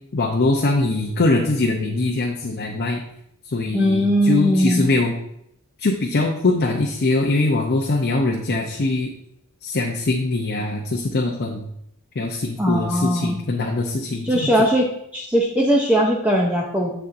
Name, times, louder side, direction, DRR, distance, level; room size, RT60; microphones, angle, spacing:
voice 1, 0.1-3.0 3.4-5.1 5.8-9.1 9.6-11.6 12.2-14.5, left 2 dB, 45° left, 1 dB, 0.6 m, -22 dB
voice 2, 3.7-4.9 12.6-13.4 14.2-14.9 15.1-16.9, equal, 5° right, -2 dB, 0.6 m, -19 dB
7.2 x 6.7 x 2.6 m, 0.75 s
head